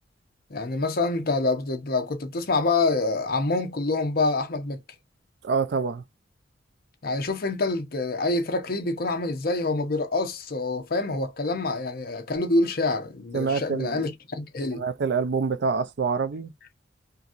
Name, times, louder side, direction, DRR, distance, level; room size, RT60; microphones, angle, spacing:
voice 1, 0.5-4.8 7.0-14.8, left 3 dB, 55° left, 0.7 m, -26 dB
voice 2, 5.4-6.0 13.3-14.1 14.7-16.5, right 5 dB, 65° right, 0.4 m, -26 dB
2.9 x 2.6 x 2.4 m
head